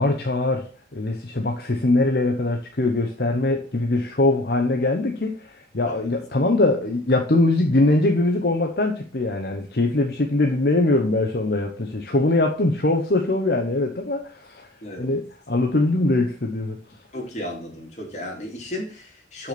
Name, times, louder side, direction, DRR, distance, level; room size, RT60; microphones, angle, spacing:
voice 1, 0.0-14.7 15.0-16.8, left 2 dB, 60° left, 1.0 m, -22 dB
voice 2, 17.1-19.5, left 1 dB, 40° left, 3.0 m, -34 dB
7.0 x 5.7 x 5.9 m
head